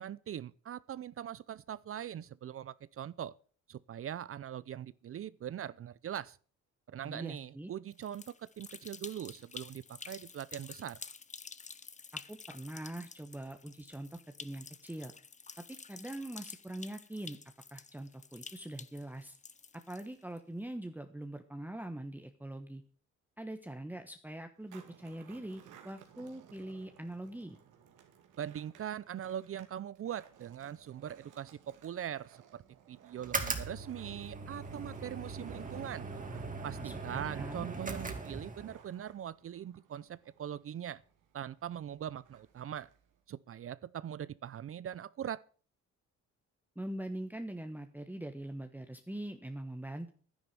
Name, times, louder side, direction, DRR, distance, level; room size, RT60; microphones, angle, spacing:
voice 1, 0.0-3.3 3.7-6.4 6.9-11.0 28.4-32.6 32.9-36.1 36.6-41.0 41.3-42.9 43.3-45.4, right 10 dB, 45° right, 0.6 m, -41 dB
voice 2, 7.0-7.7 12.1-15.1 15.7-17.4 17.7-19.4 19.7-22.8 23.4-27.6 36.8-37.7 46.7-50.1, right 1 dB, 5° right, 1.2 m, -43 dB
sound 1, 7.9-20.4, left 5 dB, 25° left, 0.8 m, -50 dB
Skateboard, 24.6-43.2, right 8 dB, 90° right, 2.5 m, -59 dB
sound 2, 33.2-38.8, right 3 dB, 25° right, 2.5 m, -40 dB
11.0 x 10.5 x 7.0 m
cardioid pair, 90°, 30 cm